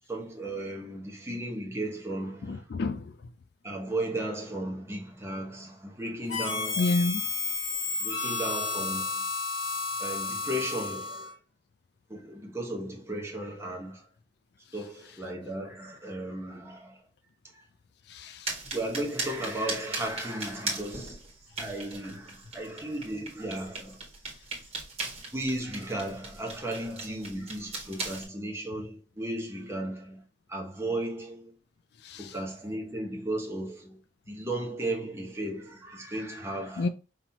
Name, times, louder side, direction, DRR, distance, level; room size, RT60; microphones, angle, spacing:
voice 1, 0.1-2.6 3.6-6.9 8.0-9.2 10.0-11.3 12.1-14.1 14.7-17.0 17.5-17.7 18.7-21.2 21.6-24.0 25.3-30.2 30.5-31.5 32.2-34.0 34.3-36.9, right 1 dB, 15° right, 1.1 m, -35 dB
voice 2, 2.5-3.1 6.8-7.3 18.1-18.5 32.0-32.3 36.8-36.9, left 3 dB, 60° left, 0.4 m, -29 dB
Harmonica, 6.3-11.3, left 4 dB, 90° left, 1.4 m, -32 dB
sound 1, 18.4-28.3, right 3 dB, 35° right, 1.5 m, -39 dB
5.5 x 2.9 x 2.8 m
head